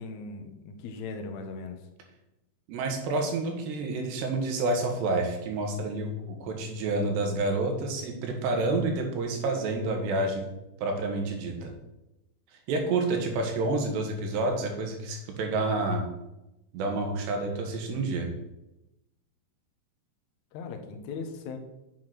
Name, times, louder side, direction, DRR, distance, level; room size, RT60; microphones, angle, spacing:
voice 1, 0.0-1.8 20.5-21.6, left 4 dB, 70° left, 4 dB, 1.8 m, -38 dB
voice 2, 2.7-10.5 10.8-11.7 12.7-16.0 16.7-18.3, right 2 dB, 80° right, 3 dB, 3.6 m, -29 dB
8.0 x 7.0 x 5.9 m, 0.93 s
omnidirectional pair, 4.9 m